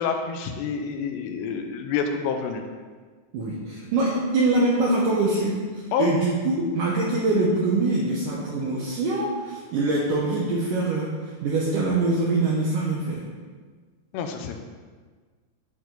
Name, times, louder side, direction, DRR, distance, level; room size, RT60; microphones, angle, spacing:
voice 1, 0.0-2.6 5.9-6.1 14.1-14.6, left 6 dB, 85° left, 5 dB, 2.9 m, -28 dB
voice 2, 3.3-13.3, right 2 dB, 75° right, -4 dB, 1.9 m, -24 dB
11.5 x 4.4 x 3.9 m, 1.5 s
omnidirectional pair, 4.9 m